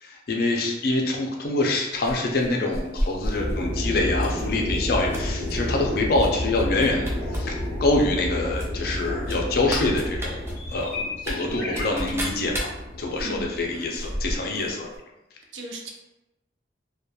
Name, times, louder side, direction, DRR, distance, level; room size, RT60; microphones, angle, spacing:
voice 1, 0.0-10.4 10.7-12.7 13.0-14.9, left 2 dB, 50° left, 1 dB, 0.4 m, -25 dB
sound 1, 2.0-3.6 4.1-4.4 4.8-5.5 6.2-6.3 6.5-7.4 7.7-7.8 8.6-14.7 14.9-15.0, equal, 15° right, 0.4 m, -32 dB
sound 2, 3.3-13.9, left 1 dB, 10° left, 0.8 m, -30 dB
voice 2, 13.2-13.6 15.5-15.9, right 2 dB, 70° right, 1 dB, 0.5 m, -36 dB
2.8 x 2.2 x 2.2 m, 0.96 s
head